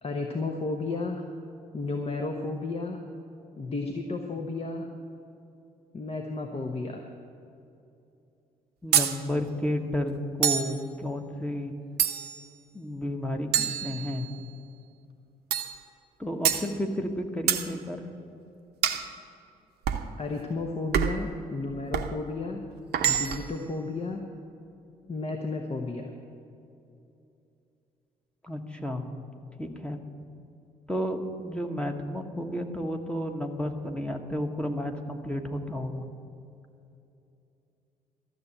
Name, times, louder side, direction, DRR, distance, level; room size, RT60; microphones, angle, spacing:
voice 1, 0.0-1.3 1.7-3.0 3.6-4.9 5.9-7.1 20.2-22.6 23.0-24.2 25.1-26.1, left 3 dB, 30° left, 3 dB, 1.1 m, -33 dB
voice 2, 8.8-11.7 12.7-14.3 16.2-18.0 28.4-29.0 29.6-30.0 30.9-36.0, left 1 dB, 5° left, 4 dB, 1.3 m, -32 dB
sound 1, 8.9-9.2 10.4-10.8 12.0-12.4 13.5-14.4 15.5-15.8 16.4-16.7 17.5-17.7 18.8-19.1 19.9-20.1 20.9-21.3 21.9-22.1 22.9-23.5, right 9 dB, 55° right, 0.8 m, -26 dB
12.5 x 7.5 x 9.2 m, 2.7 s
figure-of-eight pair, 45°, 19 cm